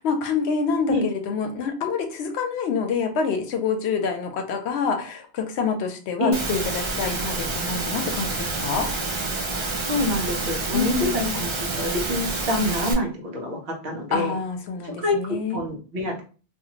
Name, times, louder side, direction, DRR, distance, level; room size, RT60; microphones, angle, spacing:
voice 1, 0.0-8.9 10.7-11.3 14.1-15.6, left 5 dB, 75° left, 5 dB, 0.9 m, -27 dB
Engine / Mechanisms, 6.3-12.9, right 3 dB, 40° right, 0.4 m, -28 dB
voice 2, 9.9-14.4 14.8-16.2, left 1 dB, 60° right, 1 dB, 1.0 m, -26 dB
2.5 x 2.5 x 2.8 m, 0.38 s
omnidirectional pair, 1.1 m